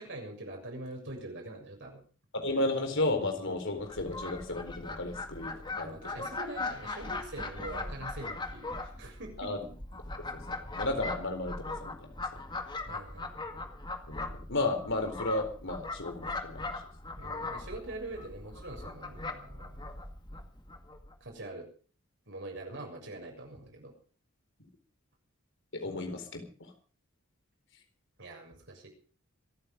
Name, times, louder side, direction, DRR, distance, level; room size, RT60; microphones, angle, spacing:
voice 1, 0.0-2.0 5.8-9.5 12.8-13.5 17.2-19.8 21.2-21.7 22.3-24.0 28.2-28.9, right 2 dB, 55° right, 1 dB, 7.0 m, -44 dB
voice 2, 2.3-6.3 9.4-9.6 10.3-10.4 10.8-12.1 14.1-16.7 25.7-26.7, left 2 dB, 60° left, 5 dB, 4.2 m, -33 dB
Fowl, 3.8-21.1, left 3 dB, 20° left, 1.9 m, -40 dB
26.5 x 9.8 x 5.2 m, 0.41 s
head